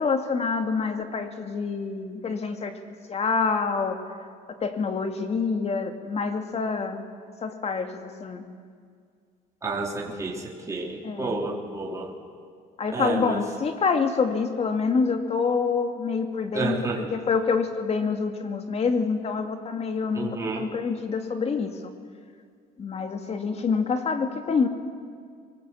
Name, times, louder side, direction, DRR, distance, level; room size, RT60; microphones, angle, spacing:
voice 1, 0.0-2.8 3.1-4.0 4.5-7.0 7.4-8.4 11.0-11.4 12.8-21.9 22.8-24.7, left 5 dB, 40° left, 6 dB, 2.3 m, -27 dB
voice 2, 9.6-12.1 12.9-13.4 16.5-17.1 20.1-20.7, right 3 dB, 20° right, -3 dB, 3.3 m, -30 dB
23.0 x 19.5 x 8.5 m, 2.1 s
cardioid pair, 110°, 17 cm